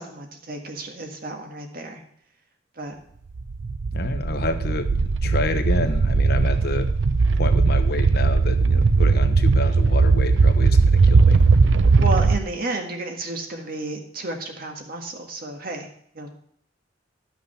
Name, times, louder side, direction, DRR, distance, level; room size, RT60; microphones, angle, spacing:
voice 1, 0.0-2.0 2.8-2.9 12.0-15.9 16.2-16.3, right 2 dB, 55° right, 3 dB, 1.8 m, -32 dB
sound 1, 3.4-12.4, right 4 dB, 90° right, 0.6 m, -18 dB
voice 2, 3.9-6.9 7.3-11.4, left 2 dB, 60° left, 8 dB, 1.0 m, -29 dB
11.5 x 6.2 x 5.7 m, 0.65 s
head